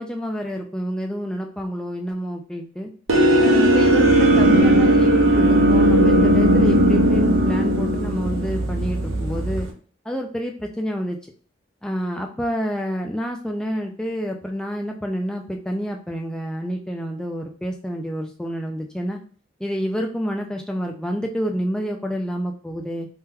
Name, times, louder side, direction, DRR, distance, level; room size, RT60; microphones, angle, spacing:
voice 1, 0.0-2.9 3.4-9.7 10.1-11.2 11.8-19.2 19.6-23.1, equal, 5° left, 1 dB, 0.3 m, -28 dB
sound 1, 3.1-9.7, right 1 dB, 80° right, 0.7 m, -17 dB
3.6 x 2.8 x 2.2 m, 0.43 s
head